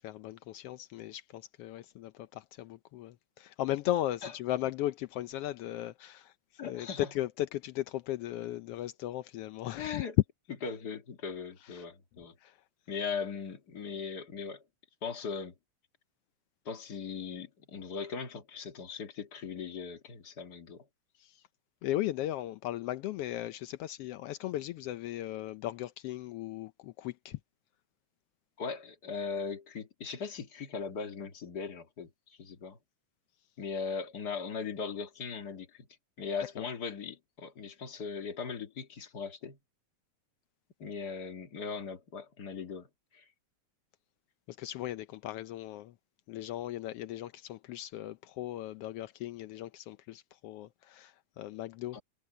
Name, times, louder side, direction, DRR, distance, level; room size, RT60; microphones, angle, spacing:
voice 1, 0.0-6.3 6.6-10.0 11.6-11.8 12.4-12.6 21.2-21.4 21.8-27.4 36.6-36.7 44.5-45.9 46.3-52.0, left 14 dB, 80° left, 1.3 m, -37 dB
voice 2, 6.6-7.1 9.8-10.2 10.6-12.3 12.9-14.6 15.0-15.5 16.7-20.9 28.6-32.8 33.6-35.9 36.2-39.6 40.8-42.9 43.1-43.3 51.9-52.0, left 5 dB, 35° left, 2.1 m, -39 dB
omnidirectional pair, 3.4 m